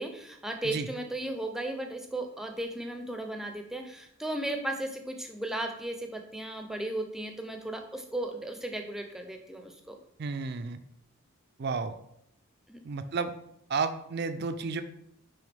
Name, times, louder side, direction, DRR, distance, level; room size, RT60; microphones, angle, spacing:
voice 1, 0.0-10.0 12.7-12.8, right 1 dB, ahead, 4 dB, 0.6 m, -35 dB
voice 2, 10.2-10.8 11.6-11.9 12.8-13.3 13.7-14.8, right 4 dB, 50° right, 9 dB, 0.4 m, -32 dB
10.0 x 3.5 x 3.5 m, 0.74 s
head